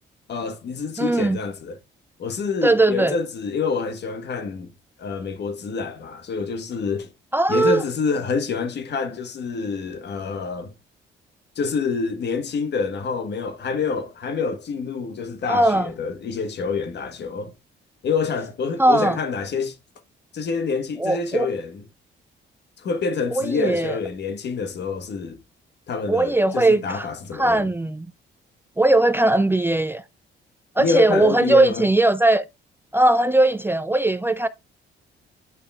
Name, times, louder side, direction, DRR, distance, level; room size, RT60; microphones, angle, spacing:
voice 1, 0.3-1.8 2.2-4.7 5.0-7.1 7.5-10.7 11.6-17.5 18.0-19.8 20.3-21.8 22.8-25.4 25.9-27.7 30.8-31.8, left 5 dB, 60° left, 1.4 m, -27 dB
voice 2, 1.0-1.4 2.6-3.2 7.3-7.8 15.5-15.9 18.8-19.2 21.0-21.5 23.3-24.0 26.1-28.1 28.8-30.0 30.8-32.4 32.9-34.5, right 2 dB, 10° right, 0.4 m, -19 dB
9.7 x 5.3 x 2.4 m
cardioid pair, 90°, 20 cm